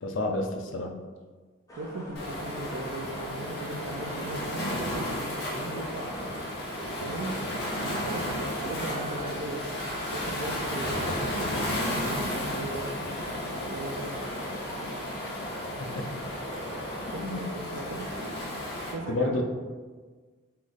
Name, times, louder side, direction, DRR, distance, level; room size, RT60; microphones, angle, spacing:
voice 1, 0.0-1.0 15.8-15.9 17.2-17.4 19.1-19.4, left 2 dB, 70° left, 3 dB, 0.5 m, -29 dB
sound 1, 1.7-18.5, equal, 15° left, 0.7 m, -41 dB
voice 2, 1.8-6.2 7.0-7.4 7.8-9.7 10.1-13.2 13.7-14.2 17.1-18.1 18.9-19.4, right 2 dB, 80° right, -2 dB, 0.5 m, -37 dB
Waves surf, 2.2-18.9, left 1 dB, 55° left, 1.0 m, -34 dB
Alarm, 7.8-8.3 8.8-9.3 9.8-10.3 10.8-11.3 11.8-12.3, right 4 dB, 10° right, 0.3 m, -45 dB
3.2 x 3.1 x 3.9 m, 1.4 s
head